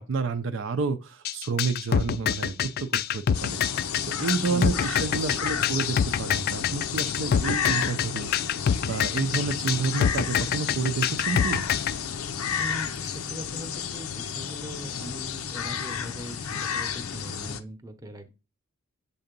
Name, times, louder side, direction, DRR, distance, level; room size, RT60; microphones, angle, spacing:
voice 1, 0.0-3.9 4.2-8.5 8.8-11.6, right 4 dB, 65° right, 0.5 m, -30 dB
sound 1, 1.2-11.9, left 8 dB, 45° left, 0.3 m, -25 dB
sound 2, 3.3-17.6, left 7 dB, 85° left, 0.6 m, -31 dB
voice 2, 4.4-5.4 12.6-18.3, equal, 15° right, 0.8 m, -41 dB
6.8 x 2.7 x 5.2 m
head